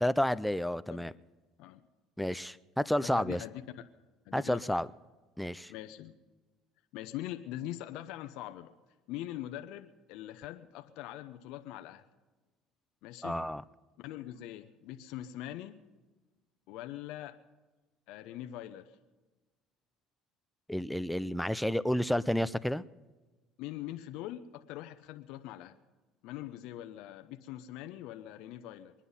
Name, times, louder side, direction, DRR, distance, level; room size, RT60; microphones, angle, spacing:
voice 1, 0.0-1.1 2.2-3.4 4.3-4.9 5.4-5.7 13.2-13.6 20.7-22.8, equal, 5° left, 16 dB, 0.4 m, -30 dB
voice 2, 0.9-1.2 1.6-1.8 3.0-3.9 4.3-4.8 5.7-6.1 6.9-8.7 9.1-12.0 13.0-13.5 14.0-15.8 16.7-17.4 18.1-19.0 23.6-25.7 26.2-28.9, left 13 dB, 75° left, 8 dB, 0.7 m, -42 dB
22.5 x 10.0 x 5.5 m, 1.3 s
supercardioid pair, 100°, 0 cm